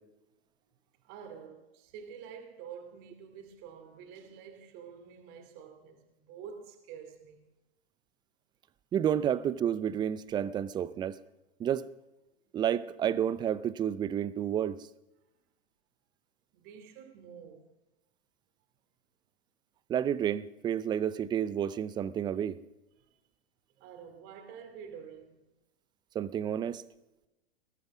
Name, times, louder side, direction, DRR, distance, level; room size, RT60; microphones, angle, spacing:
voice 1, 1.0-7.4 16.5-17.7 23.8-25.5, right 7 dB, 40° right, 2.7 m, -48 dB
voice 2, 8.9-11.2 11.6-11.8 12.5-14.8 19.9-22.6 26.1-26.8, right 9 dB, 15° right, 0.5 m, -30 dB
20.5 x 12.0 x 6.0 m
hypercardioid pair, 125°, 32 cm